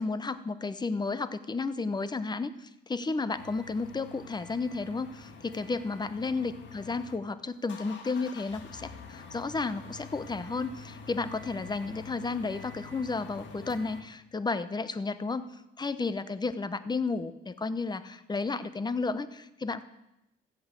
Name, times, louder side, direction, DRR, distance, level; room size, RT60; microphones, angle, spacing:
voice 1, 0.0-15.5 15.8-19.8, left 4 dB, 20° left, 14 dB, 0.8 m, -32 dB
sound 1, 3.3-7.2 7.5-14.0, left 4 dB, 70° left, 1.7 m, -47 dB
14.5 x 8.4 x 7.7 m, 0.91 s
cardioid pair, 90°, 20 cm